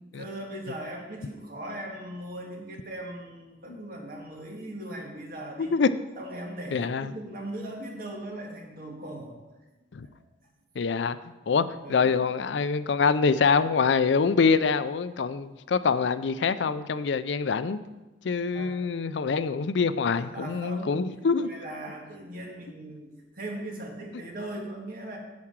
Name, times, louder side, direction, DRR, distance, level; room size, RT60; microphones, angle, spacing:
voice 1, 0.0-5.7 6.2-9.4 10.0-10.2 11.5-12.1 18.5-18.8 20.1-21.0 21.4-25.2, right 1 dB, 50° right, 0 dB, 1.9 m, -39 dB
voice 2, 6.7-7.1 9.9-10.1 10.8-11.2 11.5-11.6 11.9-17.8 18.2-21.5, left 5 dB, 75° left, 14 dB, 0.4 m, -25 dB
10.5 x 4.9 x 7.3 m, 1.1 s
head